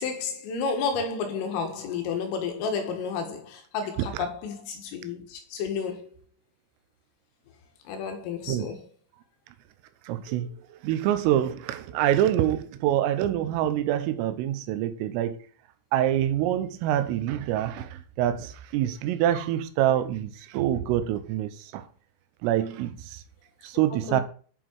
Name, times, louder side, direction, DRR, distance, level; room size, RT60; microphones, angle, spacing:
voice 1, 0.0-6.1 7.9-8.9 24.1-24.2, left 5 dB, 80° left, 4.5 m, -31 dB
voice 2, 10.1-15.4 15.9-21.9 22.4-23.2 23.6-24.2, right 12 dB, 90° right, 3.6 m, -26 dB
10.0 x 7.7 x 4.8 m
omnidirectional pair, 5.8 m